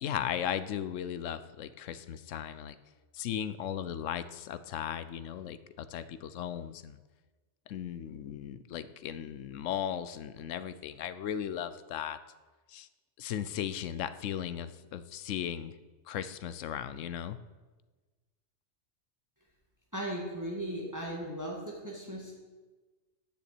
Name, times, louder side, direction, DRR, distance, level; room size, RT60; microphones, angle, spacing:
voice 1, 0.0-2.8 3.1-7.0 7.7-12.2 12.7-12.9 13.2-15.7 16.1-17.4, left 9 dB, 85° left, 14 dB, 1.0 m, -36 dB
voice 2, 19.9-22.3, right 1 dB, 15° right, -3 dB, 2.2 m, -37 dB
10.0 x 6.9 x 8.3 m, 1.3 s
omnidirectional pair, 1.3 m